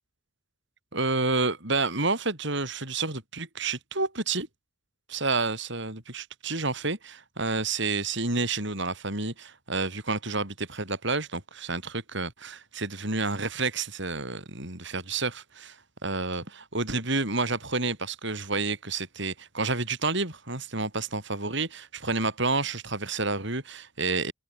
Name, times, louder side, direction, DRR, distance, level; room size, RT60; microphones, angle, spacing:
voice 1, 0.9-4.5 5.1-24.3, right 3 dB, 60° right, 6.6 m, -29 dB
open air
head